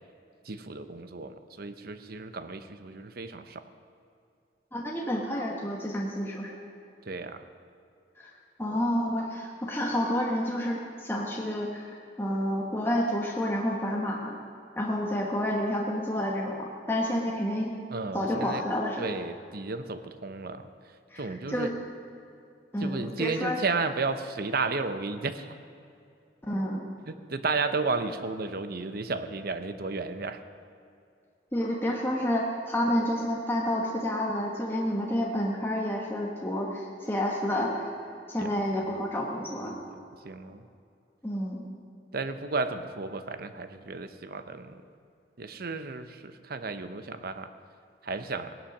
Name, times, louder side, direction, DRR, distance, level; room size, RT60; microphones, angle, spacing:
voice 1, 0.4-3.6 7.0-7.5 17.9-18.6 19.0-20.7 21.2-21.7 22.8-25.5 27.1-30.4 38.4-39.0 39.6-40.7 42.1-44.8 45.4-47.5 48.0-48.6, right 3 dB, 55° right, 10 dB, 0.8 m, -33 dB
voice 2, 4.7-6.6 8.2-8.3 8.6-14.4 14.8-17.7 18.1-19.1 21.1-21.7 22.7-23.6 26.5-26.8 31.5-37.9 38.3-39.8 41.2-41.6, equal, 15° left, -2 dB, 1.3 m, -29 dB
17.5 x 11.5 x 6.1 m, 2.5 s
head